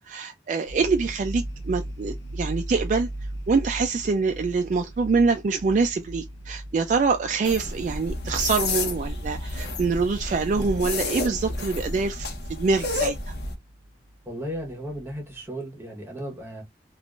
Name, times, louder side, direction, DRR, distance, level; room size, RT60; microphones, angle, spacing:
voice 1, 0.1-3.1 3.5-13.3, right 4 dB, 45° right, 0.3 m, -25 dB
sound 1, 0.7-15.4, right 1 dB, 85° left, 0.7 m, -39 dB
sound 2, 7.4-13.5, left 2 dB, 65° left, 1.0 m, -30 dB
voice 2, 14.2-16.6, equal, 15° right, 1.0 m, -35 dB
3.6 x 2.4 x 2.4 m
head